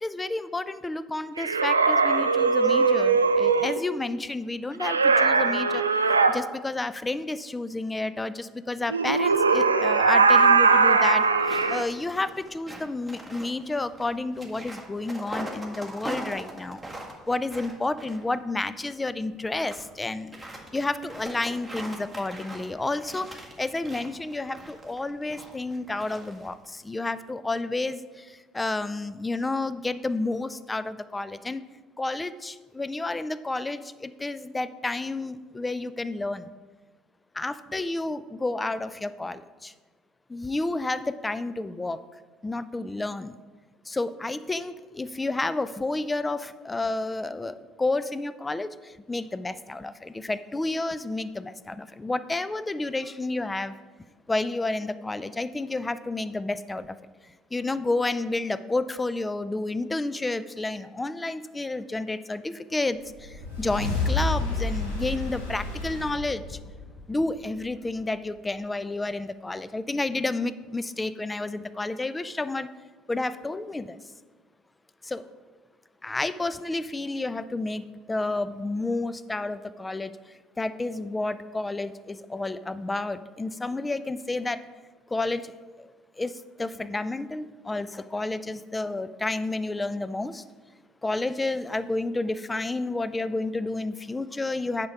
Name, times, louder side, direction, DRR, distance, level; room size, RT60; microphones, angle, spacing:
voice 1, 0.0-5.8 6.3-16.8 17.3-20.3 20.7-31.6 32.0-36.5 37.3-39.7 40.3-42.0 42.4-43.4 43.9-57.0 57.2-66.6 67.1-72.7 73.1-74.0 75.0-75.2 76.0-84.6 85.1-85.9 86.2-90.4 91.0-94.9, left 2 dB, 15° left, 15 dB, 0.4 m, -30 dB
sound 1, 1.4-3.8 4.8-6.3 8.9-11.8, right 4 dB, 85° right, 0.3 m, -20 dB
sound 2, 11.1-18.7 19.3-19.8 20.1-26.7, right 1 dB, ahead, 1.7 m, -41 dB
sound 3, 63.0-67.6, left 3 dB, 80° left, 1.9 m, -30 dB
9.5 x 5.3 x 4.6 m, 1.3 s
figure-of-eight pair, 60°, 0 cm